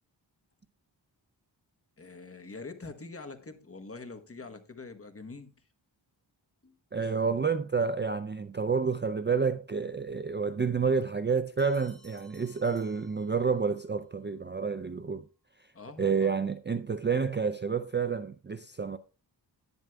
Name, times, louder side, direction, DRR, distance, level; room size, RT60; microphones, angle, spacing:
voice 1, 2.0-5.5 6.6-7.1 15.7-16.4, left 3 dB, 30° left, 1.1 m, -45 dB
voice 2, 6.9-15.2 16.0-19.0, right 5 dB, 25° right, 0.4 m, -29 dB
Bell, 11.6-13.8, equal, ahead, 3.9 m, -60 dB
10.5 x 9.2 x 2.3 m
wide cardioid pair, 95°, 43 cm